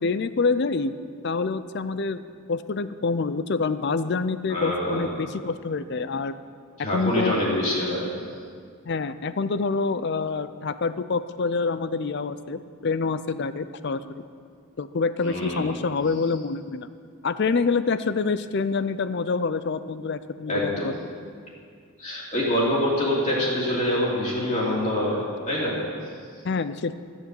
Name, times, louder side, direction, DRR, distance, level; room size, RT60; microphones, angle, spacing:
voice 1, 0.0-0.9 1.2-6.3 6.9-7.3 8.9-14.2 14.8-16.9 17.2-21.0 26.4-27.0, left 4 dB, 50° left, 13 dB, 0.5 m, -26 dB
voice 2, 4.5-5.1 6.8-8.1 15.2-15.7 20.5-20.9 22.0-25.8, left 1 dB, 30° left, -6 dB, 3.0 m, -25 dB
14.0 x 7.4 x 7.6 m, 2.1 s
head